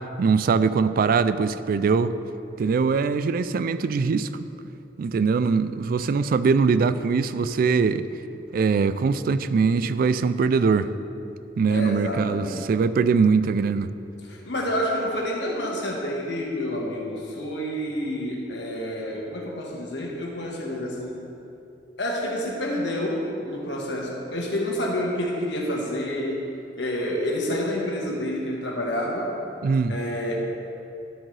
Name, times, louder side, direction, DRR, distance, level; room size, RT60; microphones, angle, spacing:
voice 1, 0.2-2.1 2.6-4.3 5.0-8.1 8.5-10.9 11.6-13.9 29.6-30.0, right 5 dB, 55° right, 14 dB, 0.3 m, -22 dB
voice 2, 11.7-12.9 14.2-21.2 22.0-26.5 26.8-29.3 29.9-30.4, left 1 dB, 75° left, -1 dB, 1.6 m, -28 dB
12.0 x 7.3 x 3.3 m, 2.9 s
head